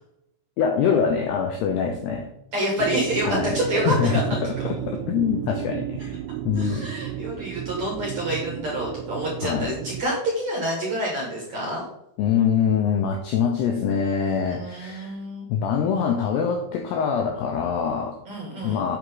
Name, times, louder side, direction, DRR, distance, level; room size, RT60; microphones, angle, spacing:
voice 1, 0.6-2.3 3.2-6.2 6.5-6.9 9.4-9.7 12.2-15.2 15.5-18.2 18.6-19.0, left 7 dB, 90° left, 4 dB, 2.3 m, -24 dB
voice 2, 2.5-4.4 6.6-11.8 14.5-15.5 18.3-18.9, right 1 dB, 55° right, -2 dB, 2.1 m, -28 dB
sound 1, 2.8-10.0, right 12 dB, 90° right, 3.2 m, -33 dB
8.2 x 8.1 x 3.8 m, 0.82 s
omnidirectional pair, 5.7 m